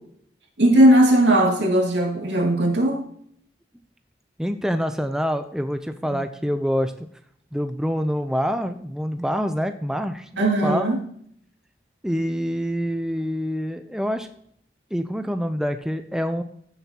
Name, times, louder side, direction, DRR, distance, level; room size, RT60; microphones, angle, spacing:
voice 1, 0.6-3.0 10.4-11.0, right 1 dB, 80° right, 0 dB, 2.3 m, -18 dB
voice 2, 4.4-6.9 7.5-10.9 12.0-14.3 14.9-16.4, equal, 5° right, 7 dB, 0.4 m, -26 dB
15.5 x 7.1 x 2.9 m, 0.66 s
head